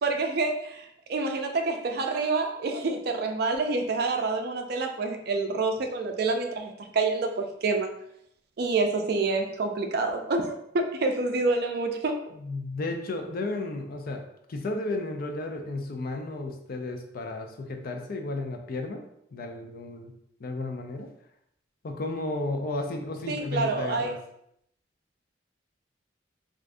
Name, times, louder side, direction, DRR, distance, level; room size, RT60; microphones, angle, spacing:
voice 1, 0.0-7.9 8.6-12.2 23.3-24.1, right 3 dB, 60° right, 5 dB, 0.4 m, -27 dB
voice 2, 12.3-14.2 14.5-19.0 19.3-20.1 20.4-21.1 21.8-24.2, left 2 dB, 55° left, 4 dB, 0.4 m, -33 dB
3.5 x 2.5 x 2.5 m, 0.73 s
head